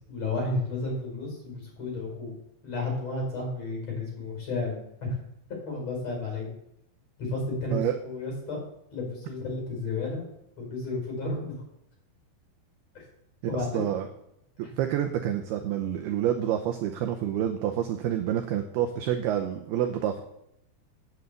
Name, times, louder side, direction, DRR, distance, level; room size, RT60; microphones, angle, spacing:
voice 1, 0.1-5.1 5.6-6.5 7.2-8.6 8.9-10.3 10.6-11.6 13.5-13.7 14.6-14.7, left 2 dB, 35° left, 0 dB, 5.7 m, -32 dB
voice 2, 13.4-14.1 14.6-20.2, right 10 dB, 75° right, 6 dB, 2.4 m, -28 dB
9.5 x 9.1 x 8.2 m, 0.79 s
omnidirectional pair, 5.4 m